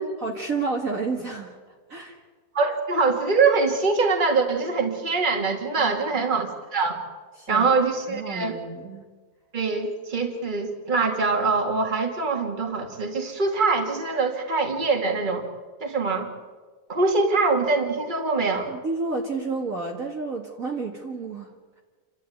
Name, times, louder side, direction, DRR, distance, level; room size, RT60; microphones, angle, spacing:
voice 1, 0.2-2.2 5.8-6.3 7.4-7.7 8.1-9.0 18.7-21.5, right 3 dB, 45° right, 1 dB, 2.2 m, -31 dB
voice 2, 2.5-7.0 7.5-8.5 9.5-15.5 15.8-16.3 16.9-18.7, right 4 dB, 25° right, 3 dB, 2.3 m, -23 dB
29.0 x 13.0 x 9.4 m, 1.5 s
omnidirectional pair, 2.2 m